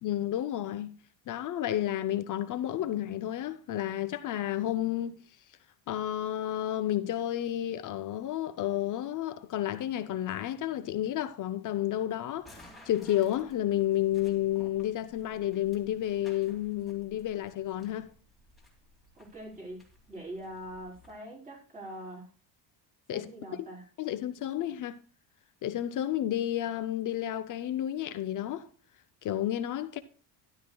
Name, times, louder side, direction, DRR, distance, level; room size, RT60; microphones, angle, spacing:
voice 1, 0.0-1.0 1.3-5.1 5.9-18.1 23.1-23.3 23.6-23.7 24.0-25.0 25.6-28.7 29.2-30.0, left 12 dB, 40° left, 0.6 m, -31 dB
sound 1, 12.4-21.1, left 1 dB, ahead, 2.6 m, -57 dB
voice 2, 19.1-22.3 23.1-23.8, right 1 dB, 15° right, 4.0 m, -43 dB
13.0 x 12.0 x 2.3 m
cardioid pair, 160°, 47 cm